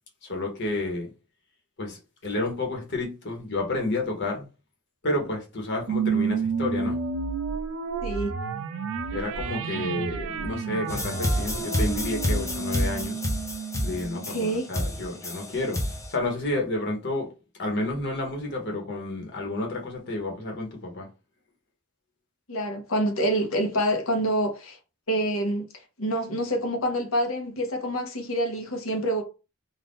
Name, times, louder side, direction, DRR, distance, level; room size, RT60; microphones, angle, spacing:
voice 1, 0.2-1.1 1.8-4.5 5.0-7.0 9.1-13.2 13.8-15.8 16.1-17.3 17.6-21.1, left 2 dB, 55° left, 1.2 m, -30 dB
sound 1, 5.9-14.6, right 5 dB, 65° right, 0.4 m, -31 dB
voice 2, 8.0-8.3 14.1-14.7 22.5-24.8 25.1-25.7 26.0-29.2, right 1 dB, 75° left, 0.9 m, -27 dB
Loopy Sound Effect Jam, 10.9-16.1, left 1 dB, 15° left, 0.6 m, -28 dB
2.6 x 2.5 x 3.5 m
head